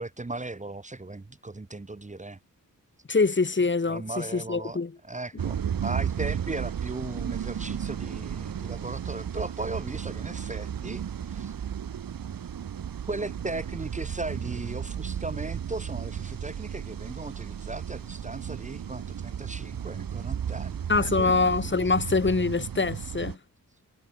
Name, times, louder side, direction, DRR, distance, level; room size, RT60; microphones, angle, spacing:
voice 1, 0.0-2.4 3.9-11.5 13.1-20.8 21.1-21.5, right 2 dB, 20° right, 1.8 m, -37 dB
voice 2, 3.1-4.9 20.9-23.4, left 4 dB, 35° left, 2.8 m, -24 dB
sound 1, 5.4-23.4, right 8 dB, 90° right, 2.0 m, -34 dB
wide cardioid pair, 115°, 34 cm